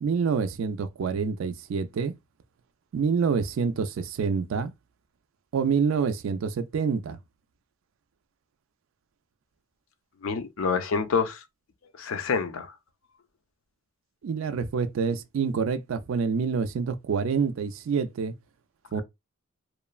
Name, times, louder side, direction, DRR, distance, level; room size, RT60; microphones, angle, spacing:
voice 1, 0.0-2.1 2.9-4.7 5.5-7.2 14.2-18.3 18.9-19.0, right 5 dB, 75° right, 0.3 m, -27 dB
voice 2, 10.2-11.4 12.0-12.7, left 5 dB, 75° left, 0.5 m, -27 dB
3.0 x 2.0 x 2.3 m
head